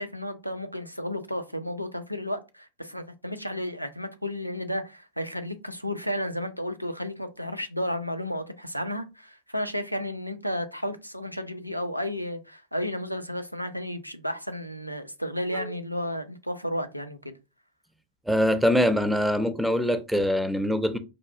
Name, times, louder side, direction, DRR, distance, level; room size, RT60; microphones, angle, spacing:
voice 1, 0.0-17.3, left 1 dB, 90° right, 0.4 m, -32 dB
voice 2, 18.3-21.0, equal, ahead, 0.5 m, -23 dB
4.9 x 2.3 x 2.3 m
figure-of-eight pair, 90°, 0 cm